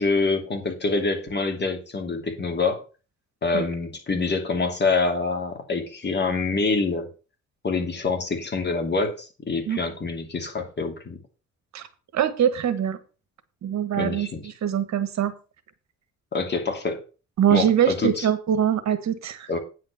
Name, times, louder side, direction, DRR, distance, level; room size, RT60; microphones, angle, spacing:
voice 1, 0.0-2.8 3.4-7.1 7.6-11.2 13.9-14.4 16.3-17.0 17.5-18.2 19.5-19.6, left 3 dB, 35° left, 4 dB, 2.8 m, -26 dB
voice 2, 12.1-13.0 13.6-15.3 17.4-19.5, right 9 dB, 65° right, 11 dB, 1.4 m, -23 dB
9.4 x 5.1 x 6.9 m, 0.34 s
cardioid pair, 90°, 30 cm